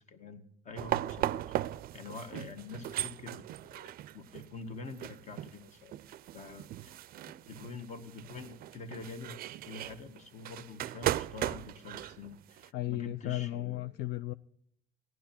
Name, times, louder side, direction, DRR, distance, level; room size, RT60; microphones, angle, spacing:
voice 1, 0.0-1.4 1.9-5.9 6.3-6.9 7.5-9.4 9.7-13.9, left 3 dB, 45° left, 7 dB, 1.7 m, -46 dB
sound 1, 0.8-12.7, right 14 dB, 60° right, 0.4 m, -38 dB
voice 2, 12.7-14.3, left 15 dB, 75° left, 13 dB, 0.5 m, -34 dB
15.5 x 11.5 x 4.3 m, 0.69 s
cardioid pair, 110°, 17 cm